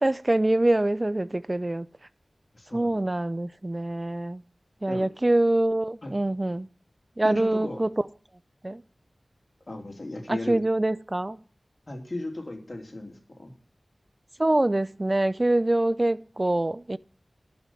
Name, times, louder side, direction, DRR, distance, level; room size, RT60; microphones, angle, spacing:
voice 1, 0.0-1.9 2.7-4.4 4.8-6.7 7.2-7.9 8.6-8.8 10.3-11.4 14.4-17.0, right 1 dB, 30° right, 0.5 m, -25 dB
voice 2, 2.5-3.0 4.9-5.1 6.0-6.1 7.2-7.8 9.7-10.6 11.9-13.5, left 2 dB, 40° left, 3.0 m, -36 dB
11.5 x 6.0 x 8.7 m
wide cardioid pair, 70°, 0 cm